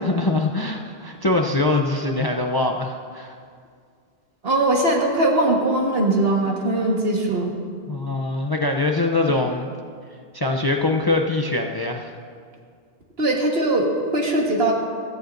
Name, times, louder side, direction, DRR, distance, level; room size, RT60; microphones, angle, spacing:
voice 1, 0.0-3.4 7.9-9.7 10.3-12.1, left 2 dB, 30° left, 3 dB, 0.5 m, -23 dB
voice 2, 4.4-7.6 13.2-14.7, right 2 dB, 70° right, 0 dB, 1.7 m, -20 dB
16.0 x 14.5 x 2.6 m, 2.1 s
omnidirectional pair, 1.0 m